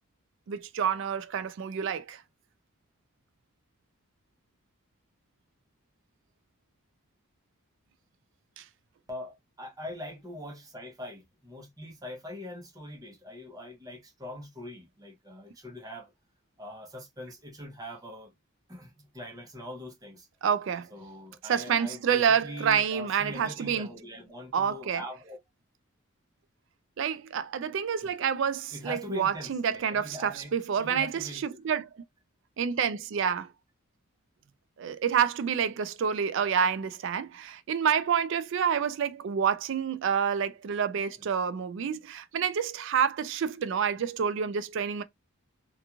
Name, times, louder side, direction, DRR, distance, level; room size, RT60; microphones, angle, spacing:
voice 1, 0.5-2.2 8.6-8.7 20.4-20.9 21.4-23.9 24.5-25.0 27.0-32.0 32.6-33.5 34.8-45.0, right 7 dB, 55° right, 0.3 m, -28 dB
voice 2, 9.1-16.1 16.6-18.3 18.7-20.3 20.9-25.4 28.0-28.1 28.7-31.6, left 1 dB, 15° right, 0.7 m, -42 dB
2.9 x 2.3 x 2.3 m
head